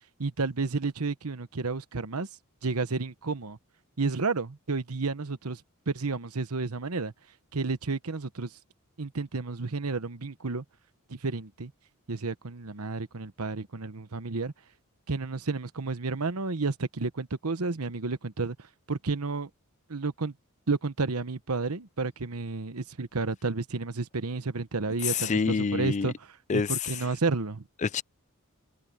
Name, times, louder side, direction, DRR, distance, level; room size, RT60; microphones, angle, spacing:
voice 1, 0.2-2.3 2.6-3.6 4.0-5.6 5.9-7.1 7.5-8.5 9.0-10.6 11.1-11.7 12.1-14.5 15.1-18.6 18.9-19.5 19.9-20.3 20.7-26.1 26.5-27.6, right 3 dB, 85° right, 1.1 m, -31 dB
voice 2, 25.0-26.1 26.5-27.0 27.8-28.0, left 5 dB, 35° left, 0.4 m, -27 dB
head